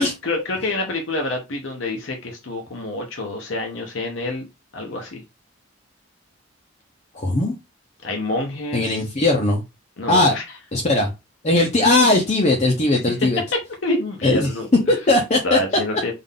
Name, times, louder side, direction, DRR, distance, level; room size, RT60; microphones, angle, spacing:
voice 1, 0.0-4.5 4.7-5.2 8.0-9.0 10.0-10.4 12.9-13.2 13.5-15.2 15.4-16.1, left 2 dB, 70° left, 0.8 m, -27 dB
voice 2, 7.1-7.5 8.7-9.6 10.1-10.3 10.7-11.1 11.4-13.4 14.2-14.5 14.9-15.6, left 2 dB, 35° left, 0.7 m, -18 dB
3.7 x 2.6 x 3.7 m
head